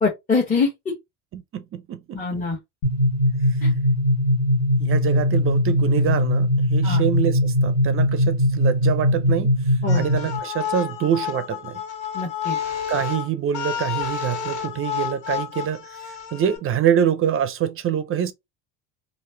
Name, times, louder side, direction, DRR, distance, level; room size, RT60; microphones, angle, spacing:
voice 1, 0.0-0.9 2.1-2.6 3.6-3.7 6.8-7.0 9.8-10.1 12.1-12.6, left 4 dB, 20° left, 1.1 m, -24 dB
voice 2, 1.3-2.4 4.8-9.5 9.9-11.8 12.9-16.0 16.3-18.3, right 9 dB, 40° right, 0.6 m, -25 dB
sound 1, 2.8-10.4, left 1 dB, 50° left, 1.5 m, -20 dB
sound 2, 9.9-16.6, left 8 dB, 75° left, 2.1 m, -30 dB
3.1 x 2.6 x 3.1 m
supercardioid pair, 105°, 35 cm